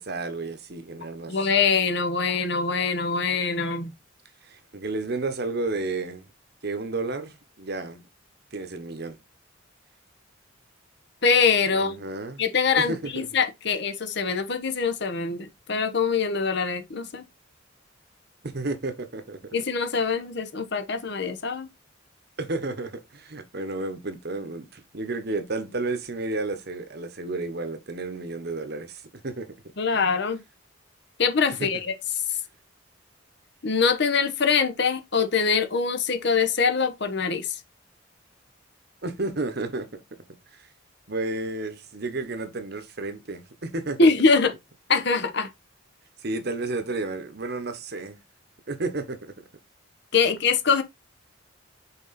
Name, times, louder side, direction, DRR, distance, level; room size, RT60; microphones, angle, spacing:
voice 1, 0.0-1.4 4.4-6.3 6.6-8.0 8.5-9.2 11.7-12.4 12.8-13.3 18.4-19.4 22.4-29.5 31.6-31.8 39.0-40.0 41.1-44.1 46.2-48.2 48.7-49.3, right 2 dB, 55° right, 1.0 m, -32 dB
voice 2, 1.3-3.9 11.2-12.0 12.4-17.2 19.5-21.7 29.8-30.4 31.2-31.9 33.6-37.6 44.0-44.5 44.9-45.5 50.1-50.8, left 5 dB, 55° left, 1.0 m, -23 dB
5.8 x 4.2 x 4.1 m
head